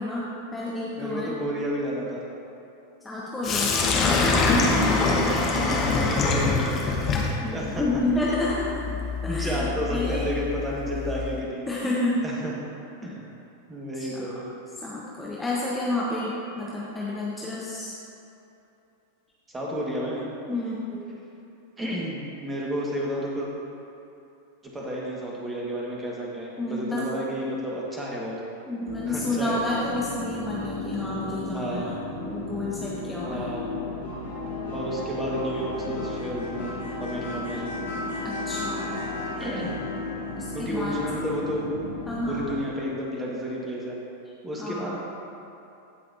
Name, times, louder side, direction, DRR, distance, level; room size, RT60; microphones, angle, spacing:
voice 1, 0.0-1.4 3.0-3.8 7.4-8.8 9.2-10.3 11.0-11.2 11.7-12.2 13.9-14.3 14.8-17.9 20.5-21.1 26.6-27.0 28.7-31.9 32.3-33.4 34.5-34.6 38.2-38.9 40.4-41.0 42.1-42.5 44.6-45.0, left 2 dB, 5° left, -7 dB, 1.2 m, -30 dB
voice 2, 1.0-2.2 5.5-7.0 7.5-7.8 9.3-11.7 12.2-12.5 13.0-13.2 13.7-14.4 19.5-20.3 21.8-23.5 24.6-28.4 29.1-29.6 31.5-32.0 33.2-33.7 34.7-37.7 39.3-39.8 40.5-41.7 42.3-44.0 44.4-45.0, equal, 15° right, -4 dB, 1.8 m, -31 dB
Sink (filling or washing), 3.4-11.4, left 3 dB, 30° left, 1.2 m, -25 dB
sound 1, 28.9-42.6, left 2 dB, 65° left, 2.1 m, -34 dB
16.0 x 5.7 x 2.8 m, 2.8 s
figure-of-eight pair, 90°, 0 cm